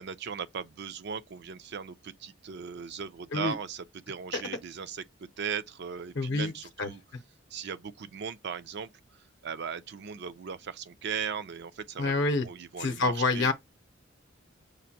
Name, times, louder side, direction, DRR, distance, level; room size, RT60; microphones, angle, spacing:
voice 1, 0.0-7.0 7.5-12.1 12.4-13.5, right 7 dB, 60° right, 0.5 m, -38 dB
voice 2, 6.2-6.5 6.8-6.9 12.0-12.5 12.8-13.5, left 3 dB, 65° left, 0.7 m, -27 dB
6.4 x 2.5 x 2.7 m
head